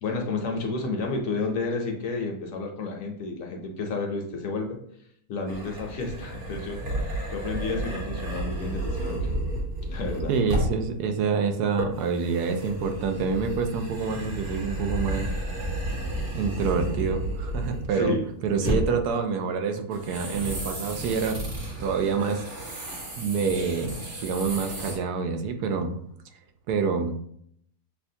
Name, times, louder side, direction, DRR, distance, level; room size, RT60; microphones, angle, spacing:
voice 1, 0.0-4.8 5.3-9.3 9.9-10.3 17.9-18.2 18.6-18.8, left 3 dB, 65° left, 2 dB, 1.0 m, -31 dB
sound 1, 5.5-10.8 11.8-18.1 18.4-19.0 19.9-25.0, right 1 dB, 50° right, 1.4 m, -32 dB
voice 2, 10.3-15.3 16.3-18.1 18.4-21.4 21.8-24.0 24.2-25.9 26.7-27.2, right 5 dB, 80° right, 5 dB, 1.1 m, -27 dB
6.7 x 2.3 x 2.7 m, 0.67 s
omnidirectional pair, 1.7 m